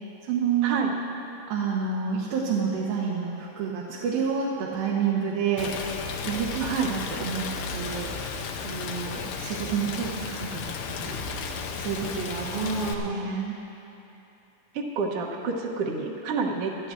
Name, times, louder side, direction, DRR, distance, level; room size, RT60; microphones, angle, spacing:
voice 1, 0.2-0.8 1.5-6.0 6.2-7.5 7.7-8.1 8.6-11.2 11.8-12.6 12.8-13.6, right 6 dB, 90° right, -5 dB, 2.9 m, -29 dB
Rain, 5.6-12.9, left 5 dB, 80° left, 2.4 m, -34 dB
voice 2, 6.6-6.9 12.4-13.3 14.7-16.9, right 4 dB, 65° right, -1 dB, 1.5 m, -29 dB
24.0 x 13.0 x 2.6 m, 2.9 s
omnidirectional pair, 4.0 m